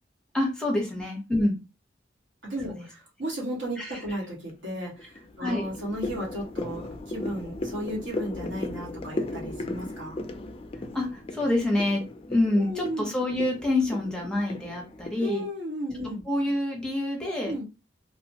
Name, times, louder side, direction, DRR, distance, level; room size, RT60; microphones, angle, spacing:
voice 1, 0.3-1.6 2.8-2.9 3.8-4.0 5.4-5.7 10.9-12.0 12.3-15.4 16.3-17.5, left 1 dB, 5° left, 0 dB, 0.7 m, -27 dB
voice 2, 2.4-10.2 12.6-13.1 15.2-16.2 17.4-17.6, equal, 80° right, -4 dB, 1.3 m, -34 dB
sound 1, 3.5-4.0 4.5-15.2, left 2 dB, 30° left, 0.3 m, -37 dB
3.0 x 2.1 x 2.7 m, 0.27 s
head